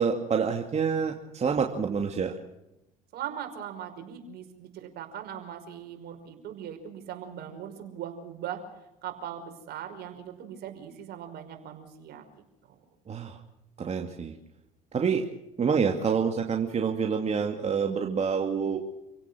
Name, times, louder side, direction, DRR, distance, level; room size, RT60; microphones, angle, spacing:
voice 1, 0.0-2.4 13.1-13.4 13.8-14.3 14.9-15.3 15.6-18.8, right 6 dB, 35° right, 3 dB, 2.5 m, -27 dB
voice 2, 3.1-8.6 9.0-12.2 12.7-12.8, right 9 dB, 60° right, 5 dB, 5.4 m, -40 dB
28.5 x 17.0 x 6.2 m, 0.88 s
hypercardioid pair, 70°, 19 cm